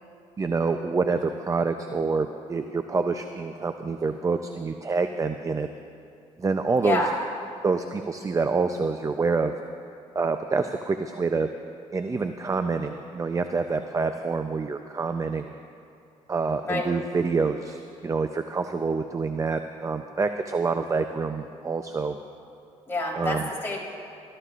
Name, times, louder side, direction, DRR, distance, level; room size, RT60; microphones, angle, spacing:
voice 1, 0.4-5.7 6.4-7.0 7.6-9.5 10.1-11.5 11.9-15.5 16.3-22.2 23.2-23.5, right 4 dB, 25° right, 7 dB, 0.5 m, -27 dB
voice 2, 22.9-23.8, left 2 dB, 20° left, -3 dB, 3.8 m, -27 dB
23.5 x 13.0 x 2.5 m, 2.5 s
cardioid pair, 85°, 13 cm